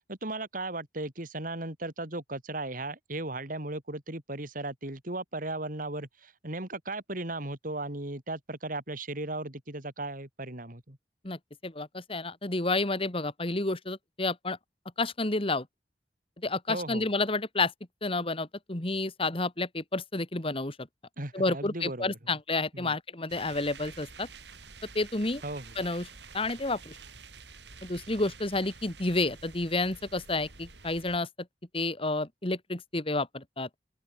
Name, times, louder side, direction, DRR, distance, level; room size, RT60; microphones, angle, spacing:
voice 1, 0.1-11.0 16.7-17.1 21.2-22.2 22.7-22.9 25.4-25.8, right 2 dB, 50° right, 3.7 m, -36 dB
voice 2, 11.2-14.6 15.0-15.7 16.4-17.7 18.0-20.8 21.3-24.3 24.9-25.4 25.8-26.1 26.3-26.9 27.8-31.3 31.7-33.7, left 2 dB, 30° left, 2.1 m, -30 dB
sound 1, 23.3-31.2, right 5 dB, 75° right, 5.3 m, -49 dB
head